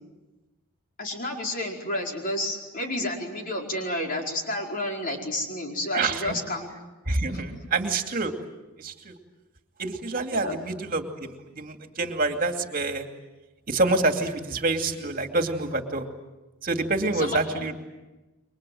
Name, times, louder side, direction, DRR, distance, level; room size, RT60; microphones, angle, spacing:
voice 1, 1.0-6.7 7.3-7.4 10.3-10.5 17.2-17.6, left 1 dB, 40° left, 1 dB, 4.8 m, -31 dB
voice 2, 5.9-6.3 7.1-8.3 8.8-9.1 9.8-13.1 13.7-16.1 16.6-17.7, right 3 dB, 40° right, 5 dB, 2.6 m, -27 dB
29.5 x 24.0 x 7.8 m, 1.1 s
head